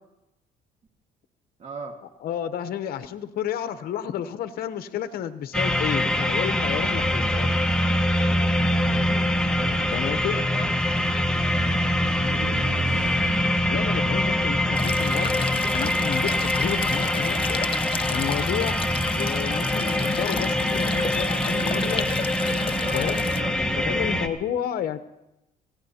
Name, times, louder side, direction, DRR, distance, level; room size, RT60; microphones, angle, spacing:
voice 1, 1.6-2.0 8.2-8.6 9.5-10.7 22.7-24.0, right 5 dB, 45° right, 4 dB, 1.7 m, -39 dB
voice 2, 2.2-7.7 9.9-10.4 13.7-16.3 16.6-17.6 18.1-18.8 19.1-22.1 22.9-23.2 23.9-25.0, left 10 dB, 60° left, 10 dB, 0.8 m, -31 dB
sound 1, 5.5-24.3, left 1 dB, 5° left, 1.1 m, -24 dB
Car, 8.5-16.8, right 5 dB, 65° right, 2.7 m, -42 dB
sound 2, 14.8-23.4, left 6 dB, 30° left, 0.9 m, -33 dB
25.0 x 17.0 x 2.8 m, 0.93 s
cardioid pair, 110°, 17 cm